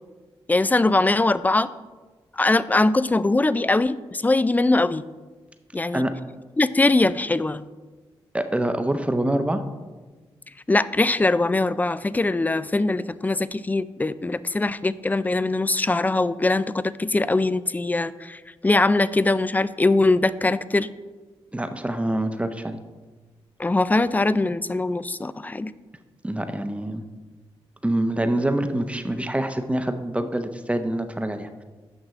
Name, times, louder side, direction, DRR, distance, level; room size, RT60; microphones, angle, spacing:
voice 1, 0.5-1.7 2.4-5.0 5.7-6.0 6.6-7.6 10.7-20.9 23.6-25.7, left 2 dB, 15° left, 16 dB, 0.3 m, -22 dB
voice 2, 8.3-9.7 21.5-22.8 26.2-27.0 27.8-31.6, right 1 dB, 10° right, 8 dB, 0.7 m, -25 dB
8.8 x 6.0 x 3.1 m, 1.3 s
supercardioid pair, 50°, 11 cm